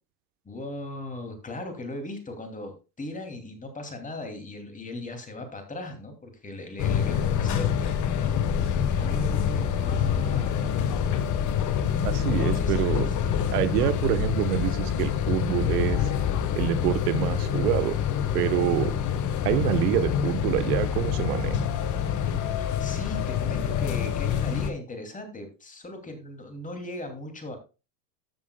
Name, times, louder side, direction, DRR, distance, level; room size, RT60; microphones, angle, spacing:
voice 1, 0.4-8.4 9.0-10.9 12.4-13.5 22.6-27.6, left 1 dB, 15° left, 5 dB, 2.7 m, -38 dB
sound 1, 6.8-24.7, left 8 dB, 35° left, 1.3 m, -26 dB
voice 2, 12.0-13.1 13.5-16.0 16.5-18.0 18.3-18.9 19.4-21.7, right 13 dB, 70° right, 14 dB, 1.2 m, -26 dB
13.5 x 7.5 x 2.2 m, 0.29 s
hypercardioid pair, 105°, 48 cm